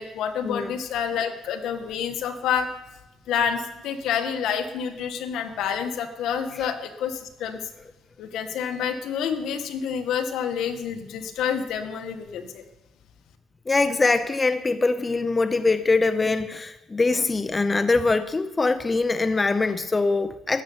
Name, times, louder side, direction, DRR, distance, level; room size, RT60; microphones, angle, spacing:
voice 1, 0.0-2.7 3.3-7.7 8.2-12.6, left 7 dB, 75° left, 6 dB, 1.6 m, -28 dB
voice 2, 13.7-20.6, left 3 dB, 20° left, 11 dB, 0.6 m, -23 dB
14.0 x 6.9 x 9.5 m, 0.97 s
cardioid pair, 115°, 0 cm